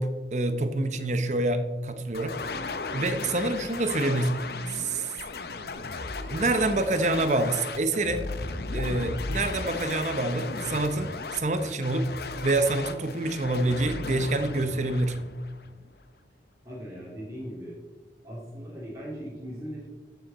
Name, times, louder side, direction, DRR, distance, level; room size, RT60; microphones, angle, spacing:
voice 1, 0.0-2.4 2.9-4.4 4.7-5.1 6.3-8.2 8.7-12.1 12.4-15.2, right 2 dB, 40° right, 9 dB, 0.8 m, -27 dB
sound 1, 2.1-16.0, left 3 dB, 65° left, 0.7 m, -36 dB
voice 2, 16.6-17.8 18.2-19.9, equal, 20° right, -7 dB, 2.8 m, -39 dB
13.5 x 6.4 x 4.1 m, 1.2 s
head